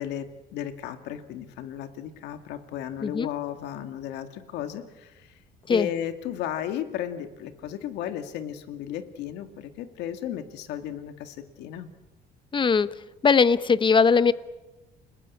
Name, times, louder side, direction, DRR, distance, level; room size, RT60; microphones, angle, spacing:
voice 1, 0.0-5.4 5.7-11.9, left 10 dB, 90° left, 8 dB, 2.1 m, -34 dB
voice 2, 12.5-12.9 13.2-14.3, left 5 dB, 30° left, 15 dB, 1.0 m, -20 dB
29.5 x 19.5 x 8.6 m, 1.1 s
cardioid pair, 110°, 17 cm